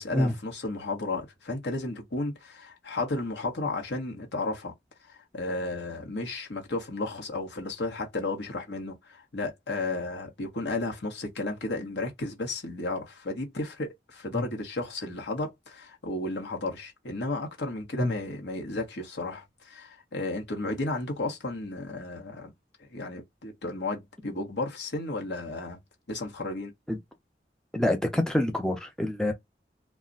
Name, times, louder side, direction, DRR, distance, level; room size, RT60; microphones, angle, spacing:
voice 1, 0.0-4.7 5.0-22.5 22.8-25.8 26.1-26.7, left 2 dB, 90° left, 1.0 m, -33 dB
voice 2, 27.7-29.3, left 1 dB, 5° left, 0.4 m, -26 dB
2.3 x 2.1 x 3.7 m
head